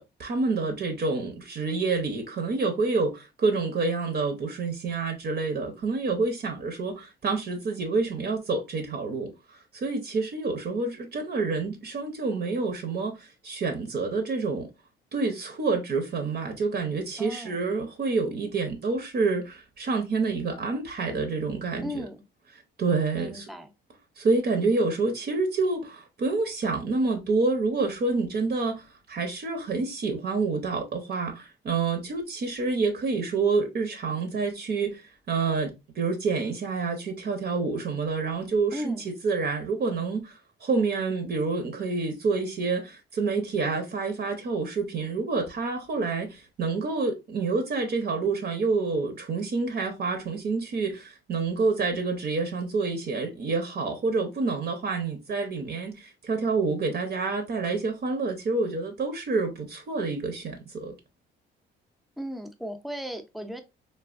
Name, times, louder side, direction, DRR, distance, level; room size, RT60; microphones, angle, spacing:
voice 1, 0.0-9.3 9.7-14.7 15.1-22.1 22.8-23.5 24.2-60.9, right 4 dB, 55° right, 0.7 m, -28 dB
voice 2, 17.2-17.7 21.8-22.2 23.1-23.7 38.7-39.1 62.2-63.6, equal, ahead, 0.5 m, -36 dB
3.3 x 2.2 x 2.4 m
cardioid pair, 90°, 20 cm